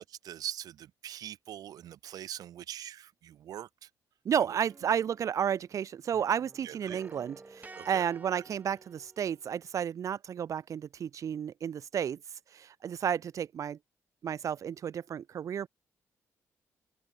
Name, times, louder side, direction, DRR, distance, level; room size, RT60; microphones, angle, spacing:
voice 1, 0.0-3.7 6.6-7.0 7.7-8.0 8.3-8.4, right 11 dB, 75° right, 1.3 m, -42 dB
voice 2, 4.2-12.2 12.5-13.8 14.2-15.7, right 8 dB, 55° right, 0.5 m, -32 dB
sound 1, 4.7-5.8 6.1-9.6, right 3 dB, 25° right, 6.3 m, -52 dB
open air
cardioid pair, 80°, 6 cm